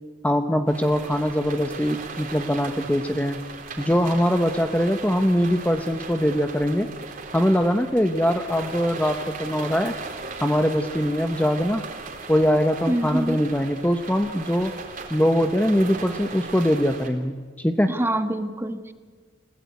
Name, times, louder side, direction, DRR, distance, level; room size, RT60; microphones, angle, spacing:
voice 1, 0.2-3.4 3.8-6.9 7.3-9.9 10.4-11.8 12.3-14.7 15.1-17.9, equal, 10° left, 6 dB, 0.9 m, -22 dB
sound 1, 0.7-17.1, right 4 dB, 45° right, 3.5 m, -38 dB
voice 2, 12.9-13.4 17.9-18.9, right 1 dB, 10° right, 8 dB, 1.3 m, -25 dB
29.0 x 17.5 x 9.4 m, 1.5 s
head